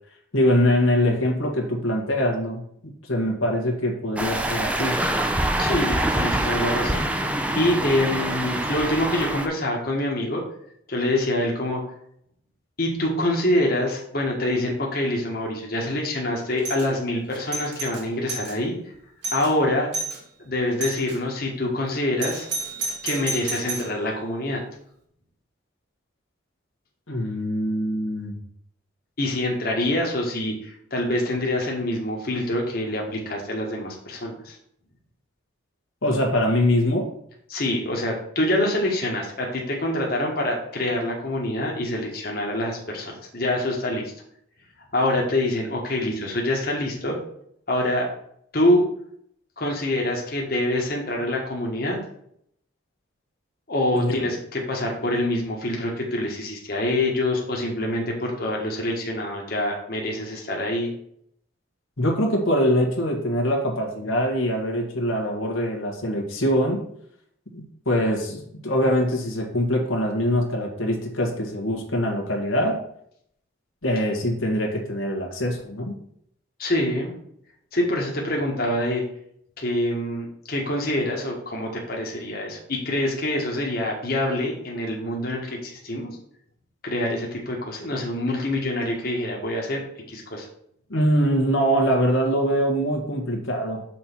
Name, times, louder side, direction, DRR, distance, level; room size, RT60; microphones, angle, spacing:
voice 1, 0.3-5.0 27.1-28.3 36.0-37.1 53.9-54.3 62.0-66.8 67.5-72.8 73.8-75.9 90.9-93.8, equal, 85° left, 1 dB, 1.6 m, -23 dB
sound 1, 4.2-9.5, right 1 dB, 5° right, 0.5 m, -25 dB
voice 2, 5.6-10.4 10.9-11.8 12.8-18.7 19.3-19.9 20.4-22.5 23.0-24.6 29.2-34.6 37.5-44.1 44.9-47.2 47.7-48.1 48.5-48.8 49.6-52.0 53.7-60.9 76.6-77.2 77.7-79.0 79.6-86.1 86.8-89.8 90.1-90.5, left 1 dB, 50° left, -1 dB, 1.5 m, -25 dB
Doorbell, 16.6-16.9 17.3-18.6 18.9-19.0 19.2-19.5 19.9-20.2 20.8-21.2 22.2-23.9, right 3 dB, 55° right, 1.7 m, -31 dB
6.3 x 4.4 x 6.0 m, 0.70 s
head